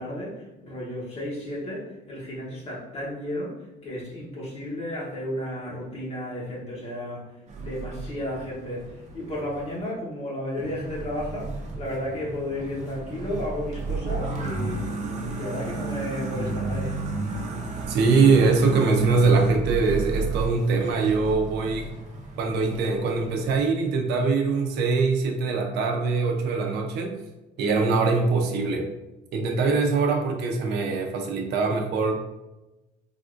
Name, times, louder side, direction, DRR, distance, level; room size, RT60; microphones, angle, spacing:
voice 1, 0.0-14.9 15.3-17.0, left 1 dB, 40° left, -5 dB, 0.9 m, -33 dB
sound 1, 7.5-9.8 10.6-23.6, right 3 dB, 45° right, 0.6 m, -33 dB
voice 2, 17.9-21.9 22.4-27.2 27.6-28.9 29.3-32.2, right 4 dB, 85° right, 3 dB, 0.5 m, -22 dB
3.4 x 2.4 x 2.5 m, 1.0 s
cardioid pair, 110°, 17 cm